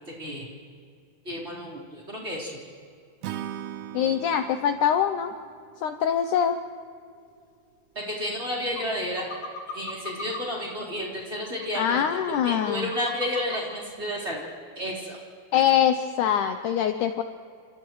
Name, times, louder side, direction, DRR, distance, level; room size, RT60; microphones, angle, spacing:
voice 1, 0.2-0.5 1.3-2.6 7.9-9.3 9.7-14.4 14.8-15.2 15.5-15.6, left 1 dB, 15° right, -5 dB, 4.0 m, -31 dB
Acoustic guitar / Strum, 3.2-6.5, right 11 dB, 80° right, 1.8 m, -39 dB
voice 2, 3.9-5.3 5.8-6.6 11.8-12.9 15.5-17.2, left 9 dB, 85° left, 7 dB, 1.7 m, -23 dB
sound 1, 8.1-8.2 8.8-8.9 9.2-10.4 10.9-11.0 11.5-13.6 14.0-14.1 14.4-14.5, left 2 dB, 45° left, 2.1 m, -37 dB
29.0 x 28.5 x 3.1 m, 2.3 s
omnidirectional pair, 4.4 m